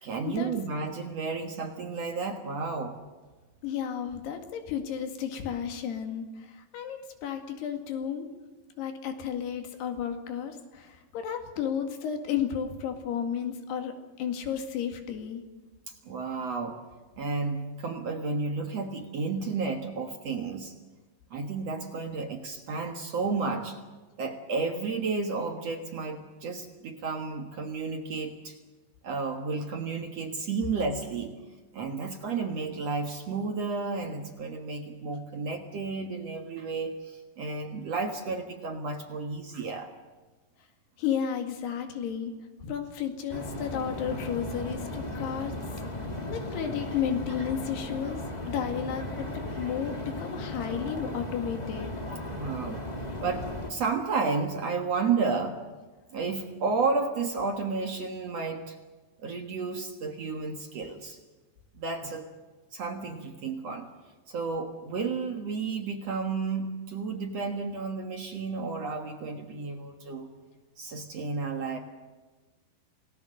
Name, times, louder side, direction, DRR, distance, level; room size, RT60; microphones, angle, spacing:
voice 1, 0.0-3.0 15.9-16.8 17.2-20.7 21.3-23.8 24.2-28.6 29.0-31.3 31.7-39.9 52.2-55.6 56.1-58.8 59.2-61.2 61.7-62.3 62.7-63.9 64.3-70.3 70.8-71.8, right 4 dB, 55° right, 4 dB, 2.1 m, -32 dB
voice 2, 3.6-8.3 8.8-15.4 41.0-42.3 42.6-45.5 46.3-51.9, left 8 dB, 90° left, 5 dB, 4.1 m, -33 dB
sound 1, 43.3-53.7, left 1 dB, 20° left, 1.1 m, -36 dB
28.0 x 19.0 x 6.6 m, 1.3 s
omnidirectional pair, 4.6 m